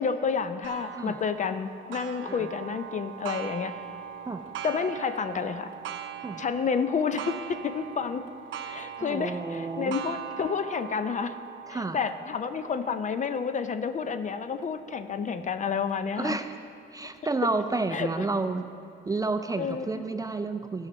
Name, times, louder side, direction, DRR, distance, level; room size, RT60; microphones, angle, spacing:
voice 1, 0.0-3.7 4.6-5.7 6.4-8.2 8.7-11.4 11.7-16.4 17.9-18.3 19.6-20.0, left 6 dB, 40° left, 10 dB, 0.5 m, -30 dB
Clock, 0.6-15.9 16.5-16.6 17.2-17.3 18.2-18.3, right 8 dB, 75° right, 0.6 m, -41 dB
voice 2, 9.0-10.0 11.7-12.0 16.2-16.5 16.9-18.7 19.1-20.9, right 3 dB, 15° right, 8 dB, 0.4 m, -30 dB
13.0 x 5.7 x 5.2 m, 2.5 s
cardioid pair, 90°, 20 cm